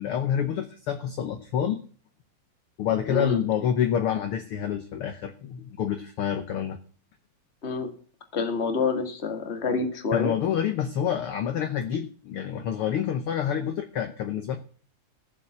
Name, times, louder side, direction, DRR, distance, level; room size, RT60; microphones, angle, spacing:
voice 1, 0.0-1.8 2.8-6.8 10.1-14.6, left 9 dB, 65° left, 7 dB, 1.5 m, -27 dB
voice 2, 3.1-3.4 7.6-7.9 8.3-10.3, left 4 dB, 25° left, 6 dB, 1.7 m, -27 dB
14.5 x 7.5 x 5.9 m, 0.44 s
omnidirectional pair, 3.3 m